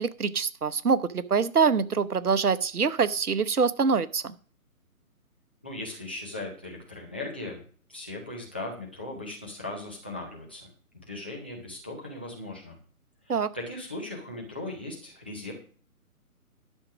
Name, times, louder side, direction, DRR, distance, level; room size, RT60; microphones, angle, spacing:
voice 1, 0.0-4.3 13.3-13.5, right 5 dB, 80° right, 14 dB, 1.0 m, -25 dB
voice 2, 5.6-7.6 7.9-10.7 10.9-12.7 13.2-15.5, left 2 dB, 5° left, -3 dB, 0.6 m, -38 dB
12.0 x 6.3 x 6.0 m, 0.42 s
figure-of-eight pair, 145°, 44 cm